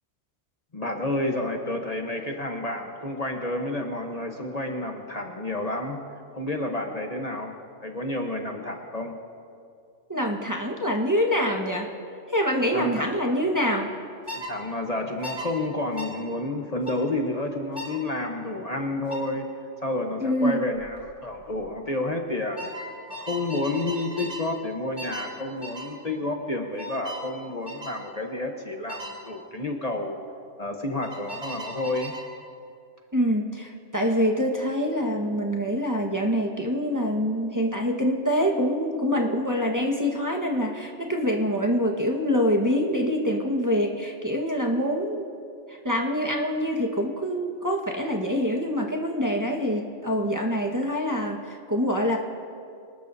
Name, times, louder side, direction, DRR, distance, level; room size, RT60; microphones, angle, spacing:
voice 1, 0.7-6.0 6.3-7.5 7.8-9.1 12.7-13.1 14.5-19.5 19.8-22.7 23.1-30.2 30.6-32.1, left 2 dB, 35° left, 2 dB, 1.1 m, -30 dB
voice 2, 10.1-11.9 12.3-13.9 20.2-20.6 33.1-45.3 45.7-52.2, equal, 15° right, -1 dB, 1.3 m, -25 dB
sound 1, 14.3-14.5 15.2-15.5 16.0-16.2 16.9-17.0 17.8-18.0 19.1-19.3 20.8-21.0 21.3-21.7 22.6-24.5 25.0-25.3 25.6-25.9 26.8-27.3 27.7-28.0 28.9-29.2 31.0-32.3, equal, 45° right, 3.8 m, -37 dB
26.0 x 19.5 x 2.7 m, 2.4 s
omnidirectional pair, 1.2 m